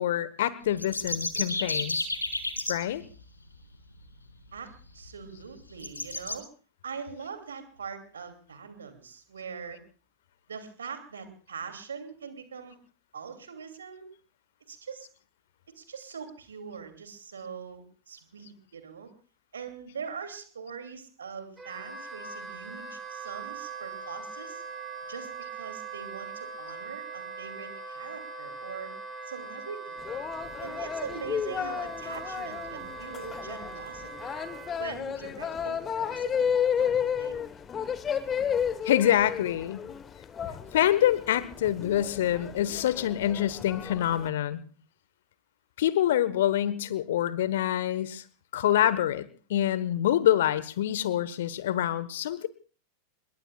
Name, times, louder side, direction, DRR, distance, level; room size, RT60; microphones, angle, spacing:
voice 1, 0.0-2.1 2.7-3.0 38.8-39.8 40.7-44.6 45.8-48.2 48.5-52.5, left 12 dB, 55° left, 17 dB, 1.1 m, -26 dB
sound 1, 0.6-2.7 4.5-4.6 5.0-5.1 5.8-6.4, left 2 dB, 80° left, 2.1 m, -31 dB
voice 2, 4.9-6.5 6.8-9.8 10.5-12.8 13.1-14.1 14.7-15.1 15.7-19.1 19.5-24.6 25.1-28.9 29.3-30.0 30.6-34.4 34.8-37.4, right 6 dB, 70° right, 8 dB, 2.6 m, -42 dB
Wind instrument woodwind instrument, 21.6-34.8, right 4 dB, 15° right, 6.6 m, -41 dB
sound 2, 30.0-44.3, left 8 dB, 25° left, 1.1 m, -32 dB
27.0 x 21.5 x 2.4 m, 0.37 s
figure-of-eight pair, 90°, 0 cm